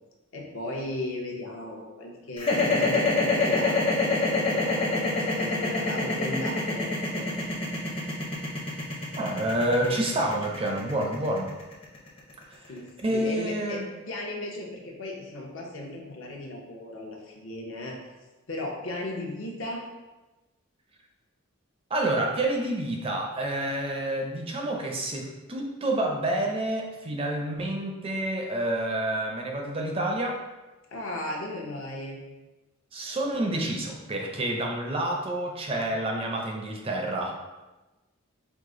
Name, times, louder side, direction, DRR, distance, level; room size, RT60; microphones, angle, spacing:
voice 1, 0.3-7.3 12.7-13.8 14.1-18.0 18.5-19.8 30.9-32.2, left 1 dB, 65° left, -1 dB, 0.8 m, -36 dB
sound 1, 2.4-12.5, left 3 dB, 25° left, 0.6 m, -26 dB
voice 2, 9.2-11.5 12.5-12.6 13.0-13.9 21.9-30.4 32.9-37.3, right 1 dB, 25° right, 1 dB, 0.4 m, -28 dB
4.8 x 2.1 x 3.7 m, 1.1 s
head